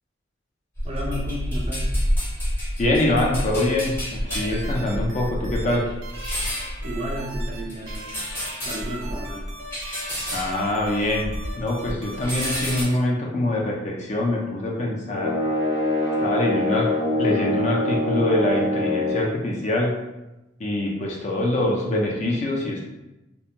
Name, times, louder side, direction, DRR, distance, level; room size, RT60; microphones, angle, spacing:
sound 1, 0.8-11.6 11.9-12.8, equal, 10° left, 0.7 m, -29 dB
voice 1, 0.8-1.9 6.8-8.1 8.6-9.4, equal, 30° right, -2 dB, 0.4 m, -33 dB
voice 2, 2.8-5.8 10.3-15.3 16.2-16.9 17.2-19.9 20.6-22.8, left 1 dB, 35° left, -1 dB, 0.4 m, -24 dB
sound 2, 4.3-5.8 6.0-7.6 7.9-13.0, right 1 dB, 90° right, 0.5 m, -40 dB
sound 3, 15.1-19.3, left 1 dB, 85° left, 0.6 m, -24 dB
2.4 x 2.2 x 2.8 m, 0.98 s
head